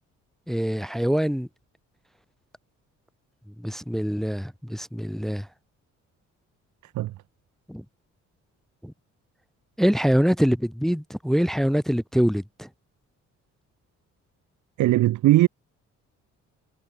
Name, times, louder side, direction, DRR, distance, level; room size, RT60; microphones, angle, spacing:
voice 1, 0.5-1.5 3.6-5.5 7.7-7.8 8.8-8.9 9.8-12.7, equal, ahead, 0.5 m, -24 dB
voice 2, 14.8-15.5, right 16 dB, 70° right, 0.7 m, -19 dB
cardioid pair, 90°, 30 cm